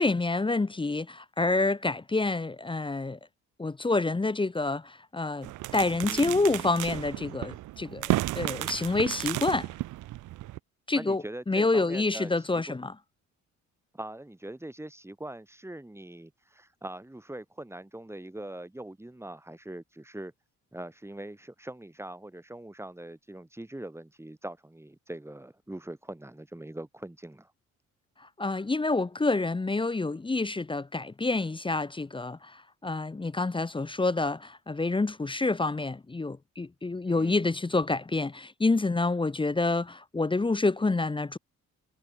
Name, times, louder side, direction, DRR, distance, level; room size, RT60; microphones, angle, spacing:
voice 1, 0.0-3.2 3.6-9.7 10.9-12.9 28.4-41.4, left 3 dB, 15° left, 1.0 m, -28 dB
sound 1, 5.4-10.6, right 16 dB, 85° right, 1.2 m, -33 dB
voice 2, 6.0-6.5 10.9-12.6 13.9-20.3 20.7-27.5 37.1-37.5, right 1 dB, 10° right, 6.5 m, -42 dB
cardioid pair, 90°, 30 cm